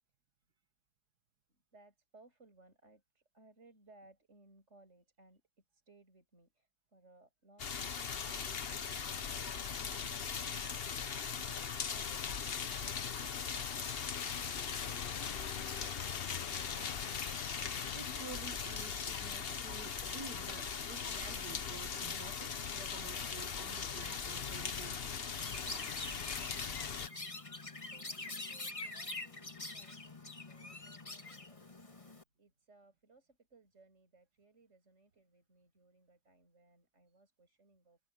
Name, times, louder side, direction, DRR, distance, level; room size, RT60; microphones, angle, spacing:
voice 1, 1.5-12.4 12.7-14.0 27.8-31.8 32.4-38.0, right 2 dB, 40° right, 7.0 m, -65 dB
sound 1, 7.6-27.1, left 6 dB, 40° left, 1.0 m, -39 dB
sound 2, 12.0-18.2, left 9 dB, 70° left, 0.5 m, -48 dB
voice 2, 17.9-25.3, right 6 dB, 70° right, 1.6 m, -51 dB
Chirp tweet, 25.4-32.2, left 2 dB, 20° left, 1.6 m, -45 dB
omnidirectional pair, 1.8 m